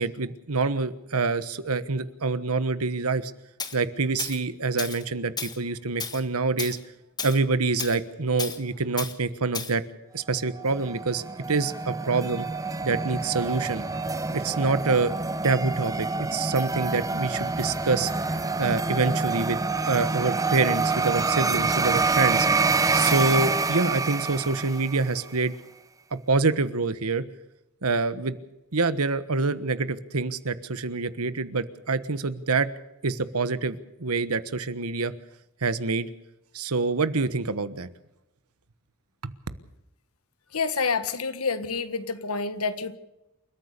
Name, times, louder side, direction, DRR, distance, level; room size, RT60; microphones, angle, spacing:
voice 1, 0.0-3.3 3.7-6.8 7.2-9.8 10.1-12.5 12.8-13.8 14.3-15.1 15.4-18.1 18.6-19.6 19.8-22.7 22.9-25.5 26.3-27.2 27.8-28.4 28.7-32.7 33.0-35.1 35.6-36.1 36.5-37.9 39.2-39.3, right 3 dB, 85° right, 13 dB, 1.3 m, -26 dB
Tools, 3.6-3.8 4.2-4.4 4.8-5.0 5.4-5.6 6.0-6.2 6.6-6.8 7.2-7.4 7.8-8.0 8.4-8.6 9.0-9.1 9.5-9.7, left 5 dB, 20° left, 1.5 m, -33 dB
sound 1, 10.5-25.2, right 4 dB, 15° right, 0.7 m, -27 dB
voice 2, 40.5-43.0, left 4 dB, 80° left, 11 dB, 1.6 m, -28 dB
29.0 x 14.0 x 6.8 m, 0.92 s
head